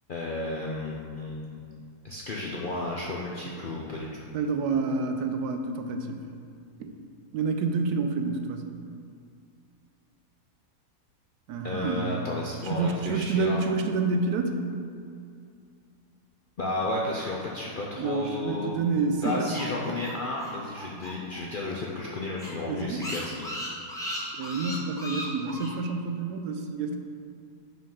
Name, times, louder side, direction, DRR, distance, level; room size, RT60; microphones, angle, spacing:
voice 1, 0.1-1.6 2.0-4.1 11.6-13.6 16.6-18.9 19.2-23.5, left 2 dB, 60° left, -3 dB, 0.5 m, -33 dB
voice 2, 4.3-6.2 6.8-6.9 7.3-8.8 11.5-12.2 12.7-14.5 18.0-19.5 22.6-23.0 24.4-27.0, right 4 dB, 80° right, 5 dB, 1.2 m, -28 dB
sound 1, 18.9-21.4 21.7-21.8 22.1-22.2 22.4-25.7, left 1 dB, 5° left, 0.9 m, -37 dB
5.4 x 5.3 x 5.5 m, 2.4 s
omnidirectional pair, 1.7 m